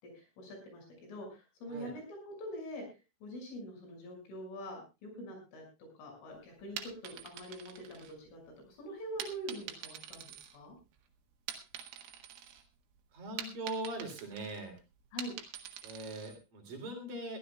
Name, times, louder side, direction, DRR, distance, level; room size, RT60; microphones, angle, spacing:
voice 1, 0.0-2.9 3.2-5.6 6.0-8.4 8.7-10.8 15.1-15.3, equal, 85° left, 3 dB, 8.7 m, -44 dB
sound 1, 6.6-8.6 9.2-11.0 11.3-12.6 13.0-16.4, right 9 dB, 90° right, 4.2 m, -46 dB
voice 2, 13.1-14.7 15.8-17.4, right 2 dB, 50° right, 4 dB, 4.6 m, -41 dB
23.0 x 15.0 x 2.3 m, 0.27 s
omnidirectional pair, 5.5 m